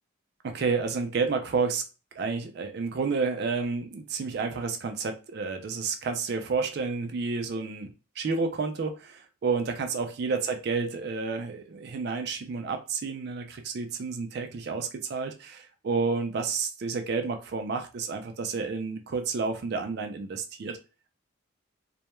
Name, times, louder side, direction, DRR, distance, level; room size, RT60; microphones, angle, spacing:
voice 1, 0.4-1.8 2.2-7.9 8.2-20.8, right 4 dB, 50° right, 6 dB, 0.3 m, -30 dB
2.2 x 2.1 x 2.9 m, 0.33 s
head